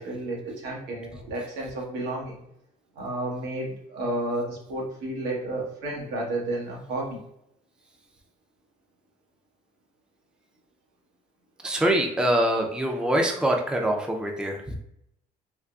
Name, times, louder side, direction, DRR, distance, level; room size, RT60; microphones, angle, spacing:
voice 1, 0.0-2.4 3.0-7.2, right 1 dB, 85° right, -2 dB, 1.2 m, -31 dB
voice 2, 11.6-14.7, right 1 dB, 5° right, 2 dB, 0.4 m, -24 dB
3.6 x 2.4 x 2.3 m, 0.77 s
cardioid pair, 110°, 17 cm